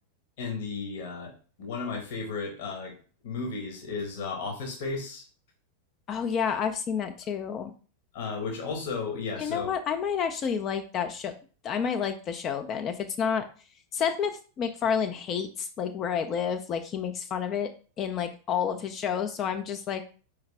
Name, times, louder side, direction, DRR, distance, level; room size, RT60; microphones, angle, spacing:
voice 1, 0.4-1.3 1.6-2.9 3.2-5.2 8.1-9.7, left 4 dB, 50° left, 2 dB, 1.3 m, -34 dB
voice 2, 6.1-7.7 9.4-11.3 11.6-13.4 13.9-14.3 14.6-17.7 18.0-20.0, left 7 dB, 30° left, 6 dB, 0.5 m, -29 dB
4.7 x 3.3 x 3.3 m, 0.38 s
figure-of-eight pair, 90°, 0 cm